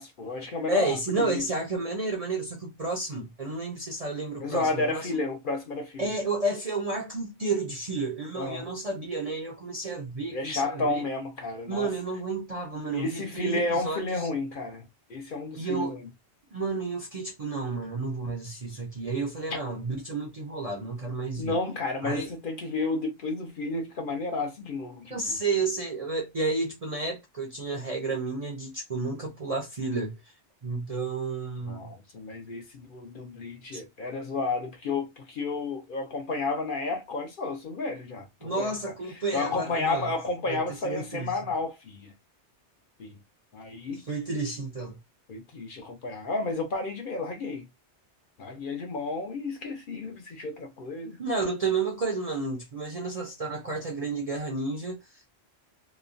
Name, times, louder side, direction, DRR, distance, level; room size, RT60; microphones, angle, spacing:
voice 1, 0.0-1.0 1.3-1.4 4.4-6.0 8.4-8.7 10.3-11.9 12.9-16.0 19.5-19.6 21.4-25.4 31.7-38.7 39.3-42.1 43.0-43.2 43.5-44.0 45.3-47.6 48.4-51.2, left 3 dB, 55° left, 0.7 m, -31 dB
voice 2, 0.7-5.1 6.0-11.1 11.7-14.3 15.6-16.0 16.5-21.6 22.0-22.3 25.1-30.1 30.6-31.9 33.7-33.8 38.4-40.1 40.5-41.3 43.9-45.0 51.2-55.3, right 3 dB, 45° right, 0.5 m, -31 dB
3.0 x 2.1 x 2.5 m
omnidirectional pair, 1.2 m